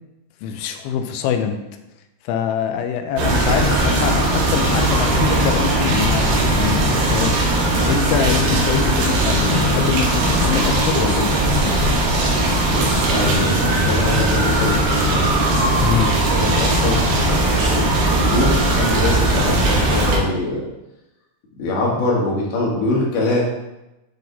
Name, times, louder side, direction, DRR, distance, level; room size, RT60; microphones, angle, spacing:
voice 1, 0.4-1.6 2.2-6.8 7.1-7.4 7.9-11.8 15.8-16.1, left 7 dB, 85° left, 6 dB, 2.9 m, -24 dB
sound 1, 3.2-20.2, right 1 dB, 65° right, 2.6 m, -18 dB
voice 2, 12.7-15.3 15.7-17.0 17.7-20.6 21.6-23.4, left 2 dB, 60° left, -5 dB, 3.3 m, -24 dB
9.2 x 4.0 x 4.0 m, 0.96 s
omnidirectional pair, 5.3 m